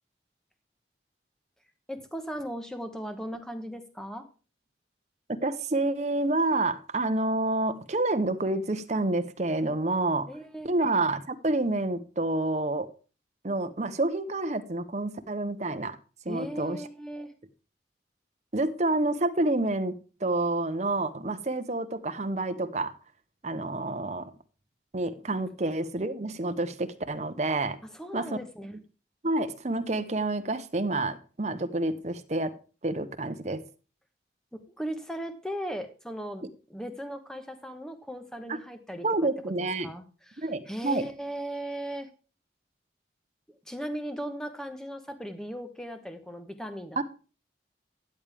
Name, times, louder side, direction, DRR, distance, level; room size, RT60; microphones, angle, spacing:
voice 1, 1.9-4.2 10.3-10.7 16.3-17.3 27.8-28.8 34.5-36.4 36.7-39.3 39.6-42.1 43.7-47.0, equal, 5° left, 1.1 m, -37 dB
voice 2, 5.3-10.3 10.6-12.9 13.4-16.0 16.2-16.8 18.5-22.9 23.4-24.3 24.9-27.8 28.1-28.3 29.2-32.5 32.8-33.6 39.0-39.9 40.4-41.0 47.0-47.1, right 2 dB, 40° right, 0.8 m, -28 dB
13.0 x 8.9 x 3.4 m
head